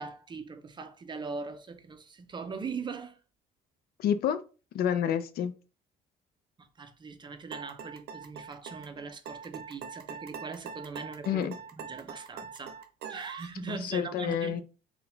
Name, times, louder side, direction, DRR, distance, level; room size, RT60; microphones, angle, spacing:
voice 1, 0.0-3.2 6.6-11.5 11.8-12.8 13.1-14.6, right 4 dB, 25° right, 0.5 m, -40 dB
voice 2, 4.0-4.4 4.7-5.5 11.3-11.6 13.7-14.6, left 9 dB, 65° left, 0.5 m, -29 dB
sound 1, 7.5-13.6, right 6 dB, 70° right, 0.6 m, -43 dB
3.9 x 2.3 x 3.9 m
cardioid pair, 110°, 17 cm